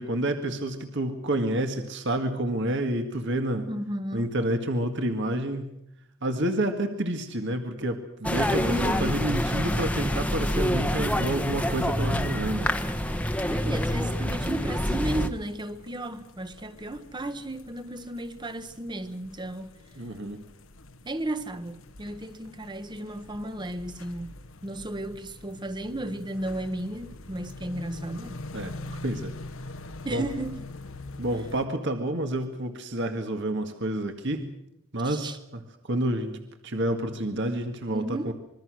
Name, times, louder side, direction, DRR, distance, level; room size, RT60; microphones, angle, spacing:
voice 1, 0.0-3.7 4.1-5.7 6.2-8.6 9.0-12.7 20.0-20.4 28.5-28.7 29.0-29.3 30.1-30.2 31.2-34.5 34.9-35.6 35.9-38.3, right 1 dB, 55° right, 1.9 m, -29 dB
voice 2, 3.7-4.4 8.6-9.3 13.4-19.7 21.0-28.4 30.0-30.7 35.0-35.4 37.9-38.3, right 1 dB, 20° right, 1.2 m, -34 dB
sound 1, 8.2-15.3, equal, 5° left, 1.2 m, -27 dB
sound 2, 14.4-31.7, left 2 dB, 65° left, 1.3 m, -44 dB
26.5 x 22.0 x 6.3 m
head